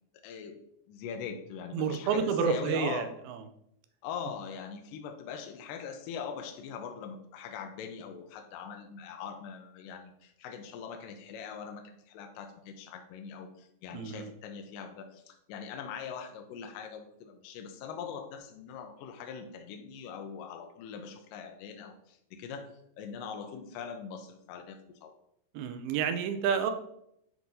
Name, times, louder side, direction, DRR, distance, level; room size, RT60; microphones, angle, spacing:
voice 1, 0.2-0.6 0.9-3.2 4.0-22.7 23.0-25.1, left 7 dB, 80° left, 5 dB, 2.1 m, -42 dB
voice 2, 1.7-3.1 13.9-14.3 25.5-26.7, right 6 dB, 85° right, 7 dB, 2.4 m, -29 dB
7.6 x 4.6 x 2.7 m, 0.75 s
omnidirectional pair, 4.2 m